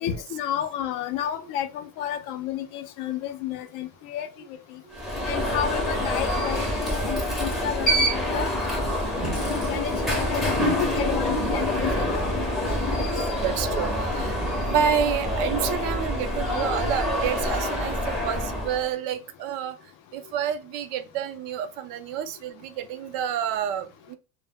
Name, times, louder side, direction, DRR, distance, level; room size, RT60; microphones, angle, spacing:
voice 1, 0.0-4.3 4.7-4.8 5.3-8.9 9.5-12.2 13.6-13.8, left 10 dB, 60° left, 0.5 m, -31 dB
Alarm, 4.9-18.9, equal, ahead, 0.5 m, -26 dB
voice 2, 12.8-24.2, right 8 dB, 65° right, 0.5 m, -29 dB
2.1 x 2.0 x 3.4 m
cardioid pair, 155°, 37 cm